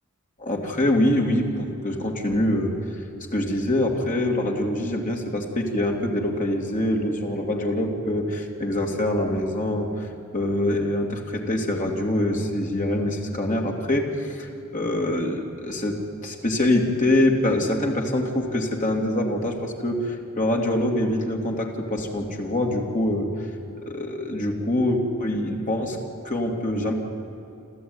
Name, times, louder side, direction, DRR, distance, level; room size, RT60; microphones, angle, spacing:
voice 1, 0.4-3.0 3.3-10.1 10.3-16.0 16.2-23.3 23.8-26.0 26.2-26.9, left 1 dB, 35° left, 1 dB, 2.8 m, -24 dB
28.0 x 13.5 x 9.7 m, 2.8 s
head